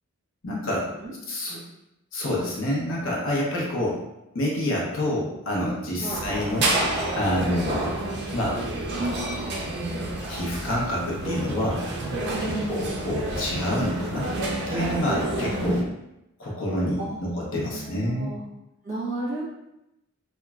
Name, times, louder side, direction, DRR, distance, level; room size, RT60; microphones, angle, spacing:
voice 1, 0.4-0.9 1.3-1.6 2.1-4.0 4.3-6.7 7.1-8.0 8.3-8.6 10.3-11.8 12.4-14.3 14.7-15.9 16.4-18.3, left 1 dB, 60° left, -4 dB, 0.7 m, -27 dB
sound 1, 6.1-15.8, right 1 dB, 50° right, 0.4 m, -29 dB
voice 2, 12.4-13.2 16.5-16.6 17.0-18.4 18.8-19.4, right 2 dB, 35° right, -7 dB, 0.9 m, -35 dB
3.0 x 2.2 x 2.3 m, 0.90 s
head